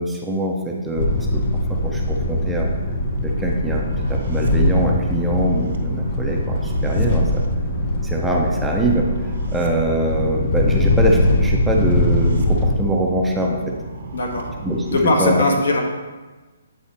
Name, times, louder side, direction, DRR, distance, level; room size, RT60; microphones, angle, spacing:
voice 1, 0.0-1.4 1.7-2.7 3.2-7.4 8.0-9.1 9.5-13.7 14.6-15.4, right 1 dB, 5° right, -1 dB, 0.6 m, -23 dB
sound 1, 1.0-12.8, left 1 dB, 35° left, 0.7 m, -21 dB
sound 2, 1.8-15.0, right 3 dB, 60° right, 0.9 m, -34 dB
voice 2, 14.1-14.5 14.8-15.8, left 2 dB, 75° left, 1 dB, 1.5 m, -19 dB
8.4 x 3.9 x 4.2 m, 1.3 s
hypercardioid pair, 165°, 0 cm